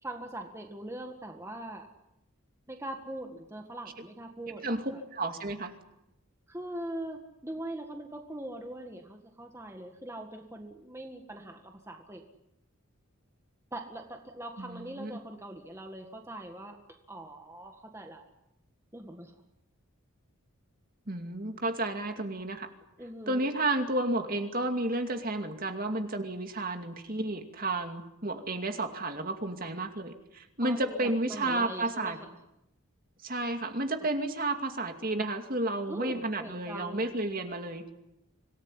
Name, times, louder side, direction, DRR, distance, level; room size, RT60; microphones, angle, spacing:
voice 1, 0.0-1.9 2.7-5.0 6.5-12.2 13.7-18.2 18.9-19.3 23.0-23.5 30.6-32.3 35.9-37.0, right 1 dB, 10° right, 3 dB, 1.9 m, -42 dB
voice 2, 4.6-5.7 14.6-15.1 21.1-22.7 23.3-32.2 33.2-37.8, right 2 dB, 40° right, 6 dB, 2.5 m, -32 dB
26.0 x 18.5 x 9.9 m, 0.85 s
head